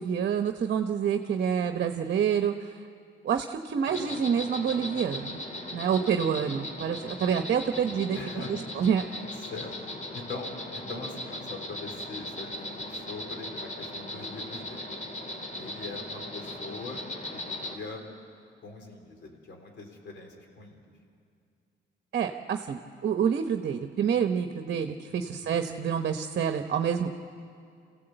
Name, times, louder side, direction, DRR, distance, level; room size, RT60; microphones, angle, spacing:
voice 1, 0.0-2.7 3.2-5.4 5.7-8.2 8.8-9.0 22.1-27.1, right 7 dB, 55° right, 7 dB, 1.0 m, -27 dB
Insect, 3.9-17.7, left 1 dB, 35° left, 2.5 m, -38 dB
voice 2, 6.0-6.4 8.1-8.9 9.5-9.7 10.1-14.9 15.5-17.0 17.3-18.0 18.6-20.8 25.1-25.4, left 3 dB, 60° left, 3 dB, 3.8 m, -42 dB
26.5 x 16.0 x 8.0 m, 2.4 s
cardioid pair, 90°, 20 cm